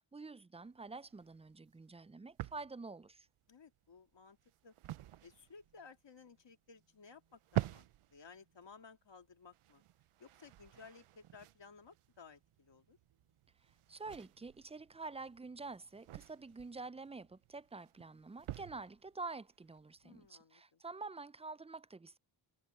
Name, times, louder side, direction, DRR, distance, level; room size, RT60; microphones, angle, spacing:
voice 1, 0.0-3.3 13.9-22.2, right 3 dB, 15° right, 0.4 m, -48 dB
sound 1, 0.6-20.3, right 14 dB, 90° right, 0.6 m, -48 dB
voice 2, 3.5-4.4 4.6-4.8 5.2-9.8 10.2-13.0 20.0-20.8, left 5 dB, 60° left, 2.1 m, -58 dB
sound 2, 5.6-9.0 9.7-10.1 10.9-11.3 11.6-15.1 15.7-16.2 16.5-17.8, right 5 dB, 70° right, 3.2 m, -84 dB
cardioid pair, 65°, 49 cm